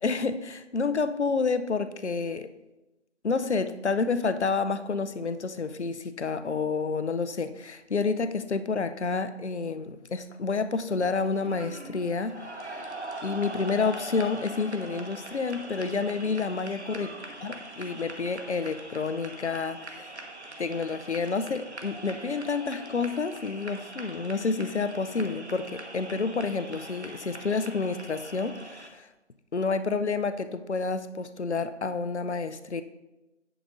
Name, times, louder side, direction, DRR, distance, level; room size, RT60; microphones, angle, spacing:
voice 1, 0.0-2.5 3.2-12.8 13.2-17.1 17.4-20.1 20.6-29.1 29.5-32.8, left 4 dB, 70° left, 11 dB, 0.6 m, -29 dB
sound 1, 10.9-28.9, right 1 dB, 70° right, 1.3 m, -42 dB
10.0 x 4.0 x 4.9 m, 1.0 s
figure-of-eight pair, 170°, 36 cm